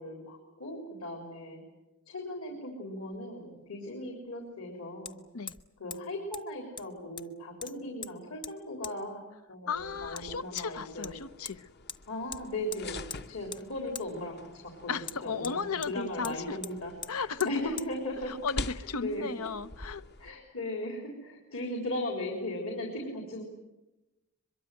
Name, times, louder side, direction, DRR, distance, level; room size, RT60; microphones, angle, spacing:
voice 1, 0.0-1.6 2.1-5.2 5.8-9.2 9.5-11.1 12.1-13.0 13.3-14.5 14.8-18.5 19.0-19.3 20.2-23.4, left 1 dB, 65° left, 3.9 m, -37 dB
Hammer, 3.1-3.2 5.1-5.2 5.5-5.7 5.9-6.0 6.3-6.4 6.8-7.3 7.6-8.1 8.4-8.5 8.8-9.0 10.2-10.3 10.6-10.7 11.0-11.6 11.9-12.0 12.3-12.4 12.7-13.2 13.5-13.6 13.9-14.1 15.0-15.9 16.2-16.4 16.6-16.7 17.0-17.1 17.4-17.5 17.8-17.9, left 6 dB, 20° left, 0.8 m, -41 dB
voice 2, 9.7-11.7 14.9-16.6 17.1-17.5 18.3-20.0, left 5 dB, 90° left, 0.9 m, -35 dB
sound 1, 9.7-20.3, left 2 dB, 50° left, 1.0 m, -46 dB
23.0 x 22.5 x 9.3 m
head